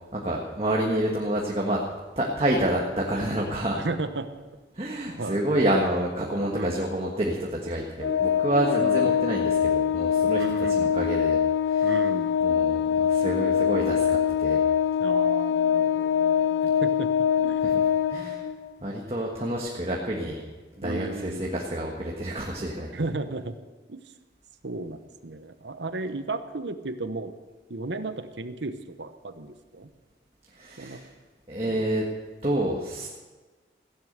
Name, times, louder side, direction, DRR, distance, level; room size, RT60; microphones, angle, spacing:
voice 1, 0.1-1.8 2.2-3.8 4.7-10.4 10.7-11.4 11.7-11.9 12.4-14.6 17.6-17.7 18.1-18.4 18.8-20.4 20.8-22.9 30.5-31.1 31.5-32.0 32.4-33.1, right 1 dB, 35° right, -2 dB, 1.6 m, -28 dB
voice 2, 3.7-4.3 5.1-5.4 6.5-6.8 8.8-9.2 10.3-10.9 11.8-12.3 15.0-17.1 17.4-17.6 20.8-21.4 22.9-23.6 23.9-24.0 24.6-27.3 27.7-29.9 30.8-31.0 31.7-31.9, right 2 dB, 85° right, 10 dB, 1.1 m, -34 dB
Organ, 8.0-18.7, left 8 dB, 85° left, 0.9 m, -23 dB
15.5 x 11.0 x 6.7 m, 1.3 s
head